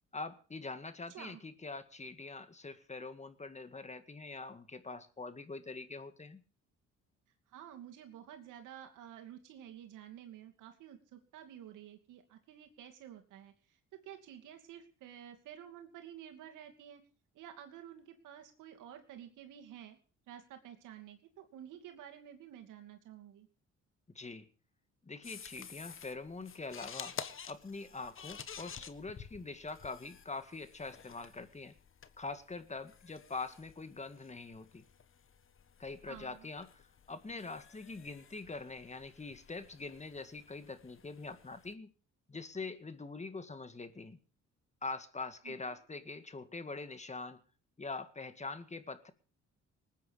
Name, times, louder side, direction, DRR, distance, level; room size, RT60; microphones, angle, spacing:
voice 1, 0.1-6.4 24.1-24.5 25.0-27.2 27.5-31.7 32.2-34.8 35.8-41.9 42.3-44.2 44.8-47.4 47.8-49.1, left 3 dB, 25° left, 10 dB, 1.9 m, -44 dB
voice 2, 1.1-1.4 7.5-13.5 13.9-17.0 17.3-20.0 20.3-23.5 36.1-36.5 45.4-45.8, right 10 dB, 90° right, 5 dB, 2.7 m, -51 dB
sound 1, 25.2-41.7, left 7 dB, 45° left, 1.4 m, -51 dB
19.5 x 9.5 x 6.4 m, 0.39 s
cardioid pair, 90°, 30 cm